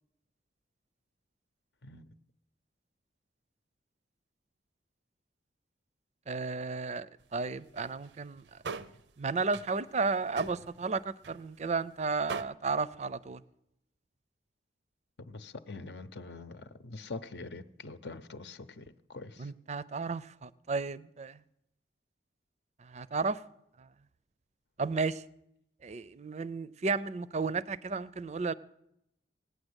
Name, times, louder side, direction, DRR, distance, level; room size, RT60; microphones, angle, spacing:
voice 1, 1.8-2.1 15.2-19.5, left 3 dB, 70° left, 0.8 m, -44 dB
voice 2, 6.3-8.6 9.2-13.4 19.4-21.4 22.8-23.4 23.8-23.9 24.8-25.2 25.8-28.5, right 4 dB, 40° right, 0.5 m, -33 dB
sound 1, 7.2-7.3 7.6-8.1 8.4-9.0 9.4-9.7 10.0-10.9 11.2-11.4 11.7-11.8 12.3-12.4, right 5 dB, 85° right, 0.7 m, -41 dB
17.5 x 9.4 x 8.1 m
head